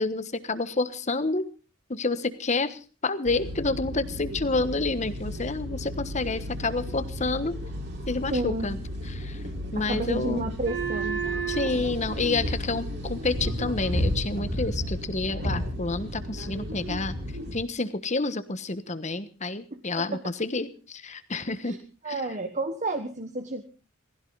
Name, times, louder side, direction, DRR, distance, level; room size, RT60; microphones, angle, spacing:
voice 1, 0.0-1.5 1.9-7.6 8.1-8.8 9.1-9.4 9.7-10.5 11.5-17.1 17.5-21.8 22.0-22.2, left 3 dB, 35° left, 13 dB, 1.3 m, -29 dB
sound 1, 3.3-17.6, right 1 dB, 55° right, 5.2 m, -32 dB
voice 2, 8.3-8.8 9.8-11.2 19.7-19.8 20.1-20.2 21.6-21.8 22.0-23.6, right 2 dB, 35° right, 7 dB, 1.3 m, -31 dB
19.5 x 16.0 x 4.0 m, 0.36 s
head